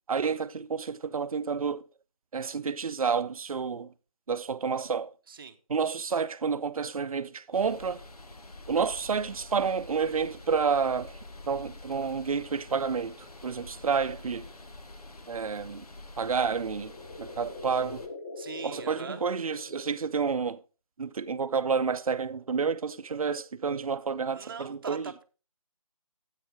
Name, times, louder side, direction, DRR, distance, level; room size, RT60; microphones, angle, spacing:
voice 1, 0.1-1.8 2.3-3.9 4.3-5.1 5.7-8.0 8.7-11.2 11.5-13.1 13.4-14.5 15.3-15.8 16.2-16.9 17.2-18.0 18.6-20.6 21.0-25.1, right 5 dB, 65° right, 0.6 m, -29 dB
sound 1, 7.5-18.1, left 2 dB, 85° left, 1.5 m, -47 dB
sound 2, 16.1-20.4, left 3 dB, 20° left, 0.5 m, -44 dB
voice 2, 18.4-19.2 24.3-25.2, right 5 dB, 35° right, 0.9 m, -41 dB
9.8 x 8.3 x 3.4 m
figure-of-eight pair, 165°, 19 cm